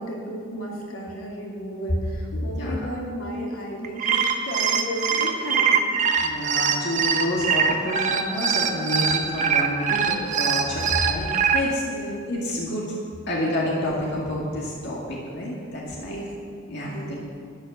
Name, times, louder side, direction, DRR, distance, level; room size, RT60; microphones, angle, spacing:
voice 1, 0.0-5.8 11.9-12.2 16.0-16.3 16.9-17.2, equal, 80° left, -3 dB, 2.8 m, -33 dB
voice 2, 2.3-2.8 6.2-11.8 12.3-12.8 13.3-16.2 16.7-17.2, left 1 dB, 55° left, -4 dB, 2.2 m, -28 dB
sound 1, 3.8-11.6, right 7 dB, 35° right, 0.9 m, -22 dB
12.5 x 10.5 x 6.3 m, 2.4 s
head